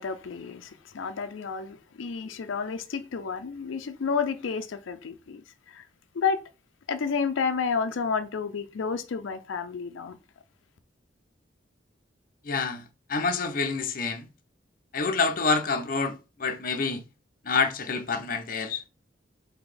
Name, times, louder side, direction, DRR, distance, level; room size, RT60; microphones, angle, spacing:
voice 1, 0.0-5.9 6.1-6.4 6.9-10.2, left 5 dB, 90° left, 0.5 m, -31 dB
voice 2, 12.4-14.3 14.9-17.0 17.4-18.8, left 4 dB, 45° left, 0.6 m, -27 dB
3.9 x 2.8 x 4.8 m
head